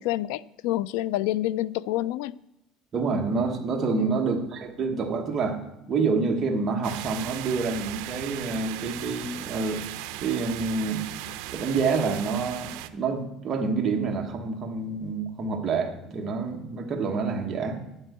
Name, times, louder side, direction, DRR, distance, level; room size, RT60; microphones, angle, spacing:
voice 1, 0.0-2.4 4.0-4.2, left 14 dB, 80° left, 0.3 m, -28 dB
voice 2, 2.9-5.6 5.9-9.8 10.2-11.1 11.5-17.8, right 4 dB, 25° right, 1.1 m, -27 dB
sound 1, 6.8-12.9, right 14 dB, 75° right, 0.5 m, -37 dB
10.5 x 4.5 x 7.8 m
cardioid pair, 170°, 0 cm